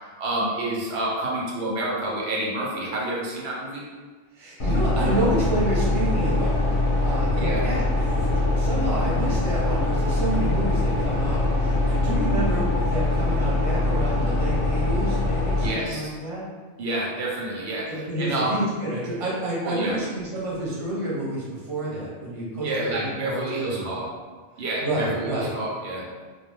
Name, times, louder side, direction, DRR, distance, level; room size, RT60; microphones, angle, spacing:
voice 1, 0.2-3.8 7.4-7.6 15.6-16.1 16.8-18.5 19.6-19.9 22.6-24.1 24.6-26.0, right 2 dB, 90° right, -3 dB, 0.9 m, -28 dB
voice 2, 4.3-6.6 7.0-16.4 17.8-24.0 24.8-25.5, right 1 dB, 35° right, -7 dB, 0.8 m, -29 dB
sound 1, 4.6-15.7, left 2 dB, 60° left, 0.7 m, -23 dB
2.2 x 2.2 x 3.2 m, 1.4 s
omnidirectional pair, 1.1 m